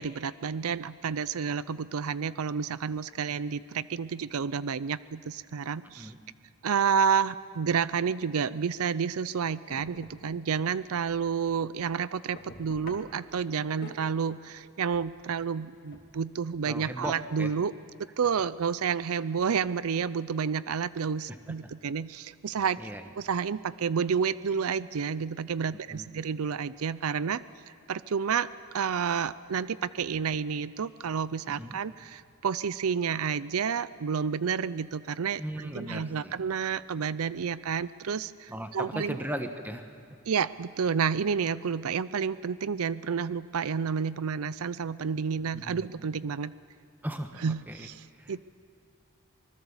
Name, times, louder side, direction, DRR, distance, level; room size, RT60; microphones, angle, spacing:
voice 1, 0.0-6.1 6.6-17.7 18.2-27.4 27.9-28.5 28.7-39.2 40.3-46.5 47.4-48.5, right 6 dB, 85° right, 17 dB, 0.5 m, -30 dB
sound 1, 9.7-11.8 12.1-14.5 14.9-15.2 15.9-17.2, left 1 dB, 45° left, 2.6 m, -50 dB
voice 2, 16.6-17.5 21.3-21.4 22.8-23.0 25.9-26.1 31.5-31.8 35.4-36.4 38.5-39.9 45.5-45.8 47.0-47.9 48.2-48.5, right 1 dB, 10° right, 6 dB, 1.2 m, -37 dB
25.5 x 20.5 x 7.2 m, 2.3 s
head